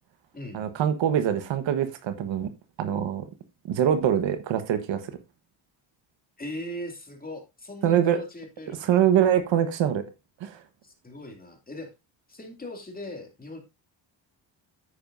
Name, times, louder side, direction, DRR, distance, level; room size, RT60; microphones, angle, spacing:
voice 1, 0.5-2.5 2.8-3.2 3.7-5.0 7.8-8.2 8.7-10.0 10.4-10.6, right 9 dB, 70° right, 10 dB, 1.4 m, -24 dB
voice 2, 6.4-9.0 10.8-11.9 12.3-13.6, left 1 dB, 20° left, 3 dB, 2.5 m, -39 dB
9.9 x 8.6 x 2.6 m, 0.24 s
cardioid pair, 120°, 46 cm